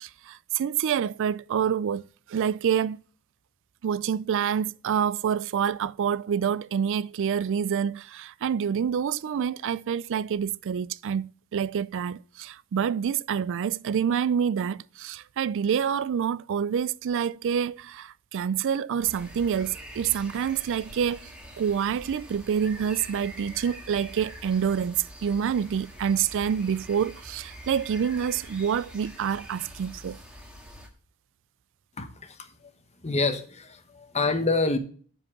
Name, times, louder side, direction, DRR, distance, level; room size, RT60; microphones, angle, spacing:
voice 1, 0.0-2.0 2.3-3.0 3.8-30.2, right 8 dB, 60° right, 0.3 m, -27 dB
sound 1, 19.0-30.9, equal, 5° right, 1.7 m, -45 dB
voice 2, 32.0-32.7 33.0-34.8, left 3 dB, 30° left, 1.0 m, -27 dB
7.3 x 5.3 x 7.2 m
head